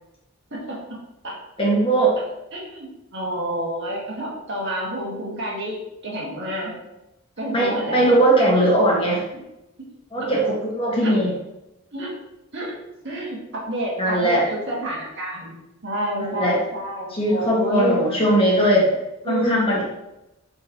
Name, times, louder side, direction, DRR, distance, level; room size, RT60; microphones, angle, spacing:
voice 1, 1.6-2.1 7.5-9.2 10.1-11.3 14.0-14.5 16.2-16.6 17.1-18.9 19.3-19.8, right 1 dB, 25° left, -4 dB, 1.9 m, -19 dB
voice 2, 2.5-6.7 7.4-8.2 9.3-9.4 9.8-9.9 11.0-11.2 11.9-12.1 12.5-12.7 13.0-15.6 15.8-18.0 18.7-18.8 19.2-19.7, right 1 dB, 55° right, -4 dB, 2.0 m, -28 dB
9.0 x 4.6 x 3.1 m, 0.92 s
head